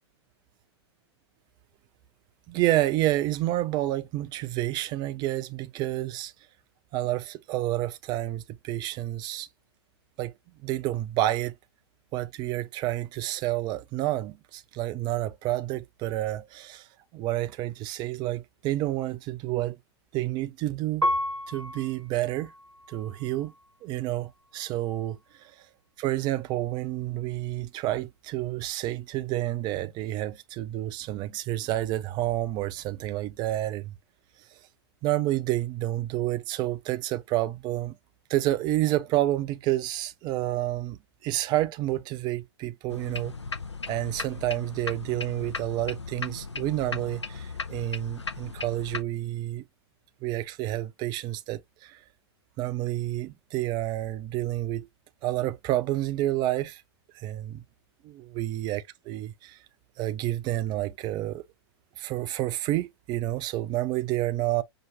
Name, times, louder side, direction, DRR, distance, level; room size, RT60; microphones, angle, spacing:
voice 1, 2.5-6.3 6.9-9.5 10.2-10.3 10.6-11.5 12.1-16.9 17.1-19.8 20.1-21.1 21.5-22.5 22.9-23.5 23.8-25.2 26.0-33.9 35.0-38.0 38.3-43.3 43.9-49.6 50.2-52.0 52.6-54.9 55.2-56.8 57.1-57.6 58.0-59.6 60.0-61.4 62.0-64.6, right 15 dB, 30° right, 0.6 m, -29 dB
Piano, 21.0-23.8 24.4-25.1, equal, 90° right, 0.8 m, -33 dB
sound 1, 42.9-49.0, left 4 dB, 85° left, 0.5 m, -37 dB
5.7 x 2.6 x 2.7 m
figure-of-eight pair, 105°, 14 cm